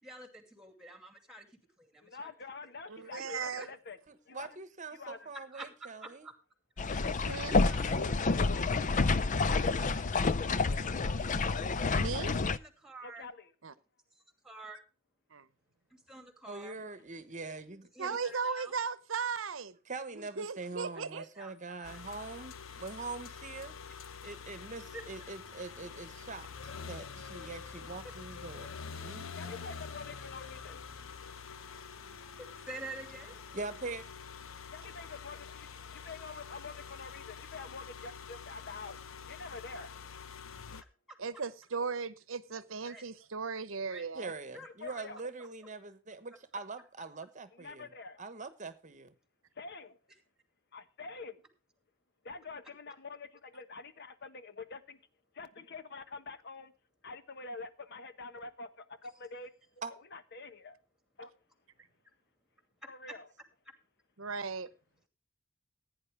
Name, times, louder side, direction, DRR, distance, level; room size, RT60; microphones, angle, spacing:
voice 1, 0.0-2.3 3.2-3.3 3.5-3.7 5.5-5.7 6.0-6.3 7.7-8.0 9.8-10.3 12.4-13.3 14.1-14.8 15.9-16.8 17.9-18.8 21.2-22.0 24.9-25.0 32.4-33.3 41.1-41.2 42.8-43.0 43.9-44.1 44.5-44.9, right 2 dB, 5° right, 2.5 m, -48 dB
voice 2, 2.0-4.0 4.3-4.6 4.9-5.3 13.0-13.5 16.9-17.0 29.4-30.8 34.7-39.0 39.3-39.9 44.6-45.3 47.5-48.2 49.5-50.0 50.7-51.4 52.2-55.0 55.3-56.7 57.0-59.5 60.1-60.8 61.2-61.3 62.9-63.3, left 4 dB, 55° left, 1.2 m, -46 dB
voice 3, 2.9-3.7 7.3-7.6 12.0-12.4 13.6-13.7 15.3-15.5 18.0-19.8 20.1-21.2 41.2-44.3 64.2-64.7, right 5 dB, 75° right, 0.9 m, -37 dB
voice 4, 4.1-6.3 16.5-17.9 19.9-23.8 24.2-29.5 30.0-30.1 33.5-34.0 44.1-47.9 48.2-49.1 59.8-59.9, right 3 dB, 40° right, 1.1 m, -43 dB
sound 1, 6.8-12.6, left 3 dB, 40° left, 0.5 m, -29 dB
sound 2, 21.8-40.8, left 6 dB, 80° left, 0.9 m, -46 dB
16.0 x 9.7 x 3.3 m
head